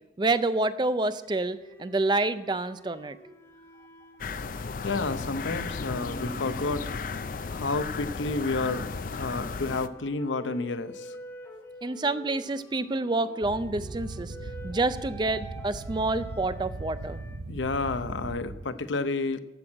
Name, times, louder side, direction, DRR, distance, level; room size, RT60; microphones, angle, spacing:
voice 1, 0.2-3.2 11.8-14.3 14.6-17.2, right 2 dB, 25° right, 13 dB, 0.4 m, -28 dB
sound 1, 1.3-7.9 8.4-17.4, right 1 dB, 15° left, 1.0 m, -48 dB
sound 2, 4.2-9.9, left 4 dB, 45° left, 0.5 m, -35 dB
voice 2, 4.8-7.0 7.5-11.2 17.5-19.4, left 3 dB, 85° left, 11 dB, 0.7 m, -30 dB
sound 3, 13.4-18.7, right 2 dB, 70° right, 0.8 m, -39 dB
14.5 x 6.2 x 8.6 m, 1.1 s
head